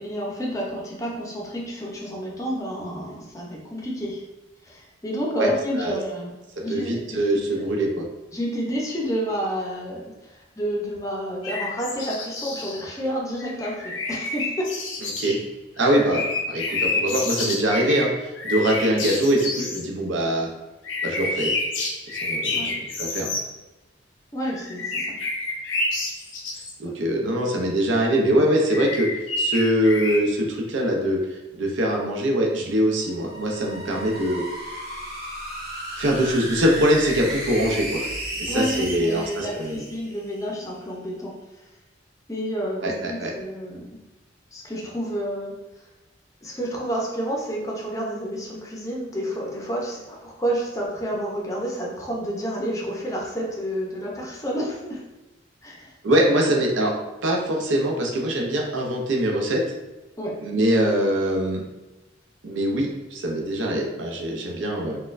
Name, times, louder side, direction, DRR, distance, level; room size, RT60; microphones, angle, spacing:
voice 1, 0.0-4.2 4.6-6.3 6.6-7.7 8.3-14.7 22.5-22.8 24.3-25.2 38.5-41.3 42.3-44.0 44.5-45.5 46.4-55.0 55.6-55.9 60.2-60.4, equal, 15° left, -3 dB, 0.5 m, -30 dB
voice 2, 6.7-8.0 15.2-15.4 15.8-20.5 21.0-21.5 22.1-22.7 23.0-23.3 26.8-29.1 29.4-31.2 31.5-34.4 36.0-38.1 38.4-39.8 42.8-43.3 56.0-56.9 57.2-59.6 60.4-61.6 62.4-65.0, right 1 dB, 80° right, 0 dB, 0.6 m, -23 dB
sound 1, 11.4-12.8 13.4-15.4 15.8-19.8 20.8-23.5 24.5-26.7 28.7-30.2, left 2 dB, 85° left, 0.6 m, -29 dB
sound 2, 33.0-40.4, right 1 dB, 50° right, 0.9 m, -34 dB
4.1 x 2.2 x 2.5 m, 1.0 s
head